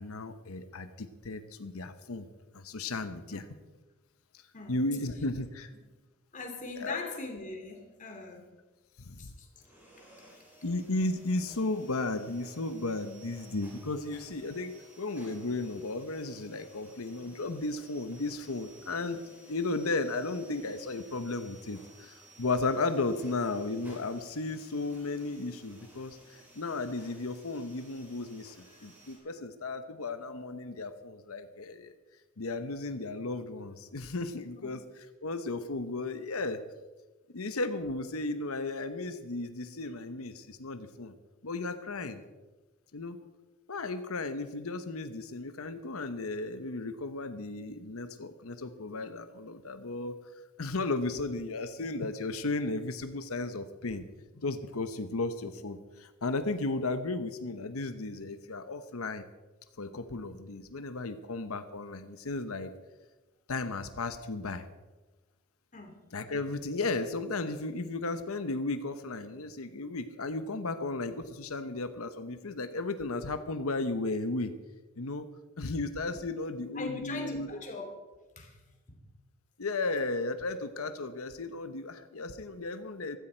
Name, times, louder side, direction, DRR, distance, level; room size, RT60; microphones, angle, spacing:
voice 1, 0.0-2.3 2.5-3.4 4.7-5.7 6.8-7.0 9.0-9.3 10.6-19.2 19.5-31.9 32.4-34.8 35.2-36.6 37.3-41.1 41.4-42.2 42.9-43.2 43.7-50.2 50.6-54.1 54.4-59.2 59.8-62.7 63.5-64.6 66.1-74.5 75.0-75.2 75.6-77.5 79.6-83.2, left 3 dB, 80° left, 10 dB, 0.9 m, -34 dB
voice 2, 6.3-8.4 9.2-9.5 34.6-34.7 65.7-66.0 76.7-77.9 78.4-78.6 78.9-79.0, left 3 dB, 35° left, 3 dB, 2.7 m, -40 dB
sound 1, 9.5-29.2, right 1 dB, 10° right, 5.2 m, -56 dB
15.5 x 14.0 x 4.5 m, 1.2 s
head